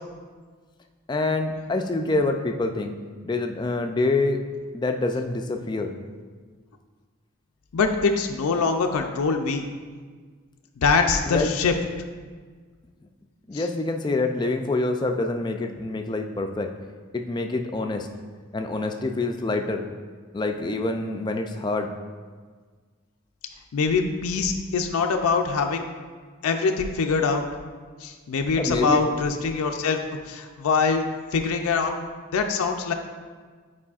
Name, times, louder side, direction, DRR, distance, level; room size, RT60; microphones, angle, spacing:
voice 1, 1.1-3.0 3.2-4.4 4.7-5.9 11.3-11.5 13.5-16.7 17.1-18.1 18.5-19.8 20.3-21.9 28.6-29.0, left 2 dB, 20° left, 4 dB, 0.3 m, -26 dB
voice 2, 7.7-9.6 10.8-11.7 13.5-13.7 23.7-25.8 26.4-27.4 28.0-30.0 30.3-31.9 32.3-32.9, left 4 dB, 85° left, 4 dB, 0.4 m, -23 dB
8.4 x 4.8 x 2.4 m, 1.6 s
head